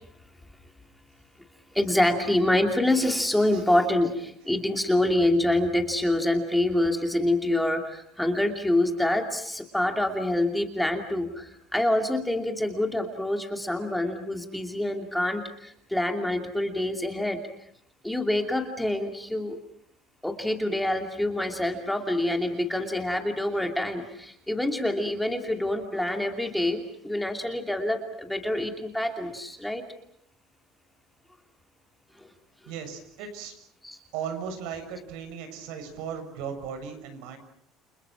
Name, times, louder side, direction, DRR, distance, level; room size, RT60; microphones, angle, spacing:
voice 1, 1.7-17.4 18.0-19.6 20.2-29.8 32.2-32.3 33.8-34.0, left 1 dB, 5° left, 4 dB, 2.7 m, -26 dB
voice 2, 32.7-33.5 34.1-37.4, right 7 dB, 85° right, 7 dB, 7.1 m, -36 dB
30.0 x 27.5 x 6.0 m, 0.68 s
cardioid pair, 165°, 0 cm